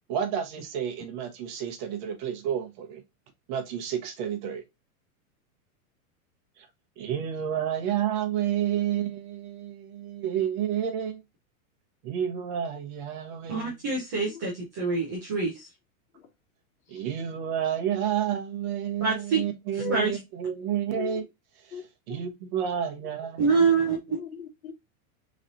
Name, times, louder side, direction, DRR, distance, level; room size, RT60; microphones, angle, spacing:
voice 1, 0.1-3.0 3.5-4.6 6.6-6.7 7.0-11.2 12.0-13.8 16.9-21.2 22.1-23.4, right 9 dB, 35° right, 0.8 m, -30 dB
voice 2, 13.5-15.7 19.0-19.4 19.9-20.2 23.4-24.0, right 4 dB, 15° right, 0.4 m, -25 dB
voice 3, 20.9-21.2 21.7-21.8 22.1-22.2 23.9-24.7, left 7 dB, 75° left, 1.5 m, -39 dB
4.0 x 3.1 x 2.5 m
supercardioid pair, 170°, 43 cm